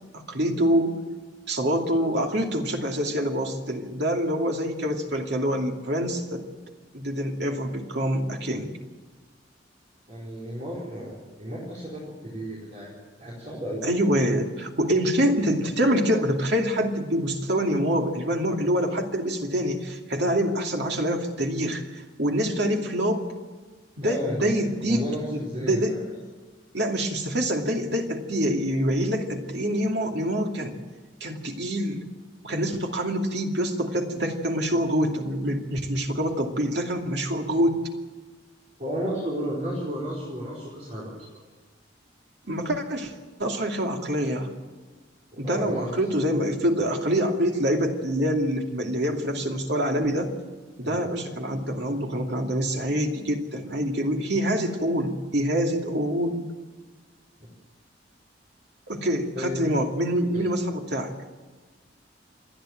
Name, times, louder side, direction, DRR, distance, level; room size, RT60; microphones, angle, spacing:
voice 1, 0.1-0.9 1.5-6.4 6.9-8.7 13.8-21.8 22.2-23.3 24.0-25.0 25.3-26.0 26.7-30.8 31.2-32.0 32.4-37.8 42.5-43.1 43.4-44.5 45.4-50.3 50.8-56.4 58.9-61.1, equal, 65° right, 2 dB, 2.6 m, -25 dB
voice 2, 10.1-13.9 24.0-24.5 24.8-26.0 38.8-41.1 45.4-45.9 50.8-51.0 59.3-59.7 60.3-60.4, equal, 40° right, -6 dB, 4.5 m, -33 dB
27.5 x 10.5 x 9.1 m, 1.3 s
head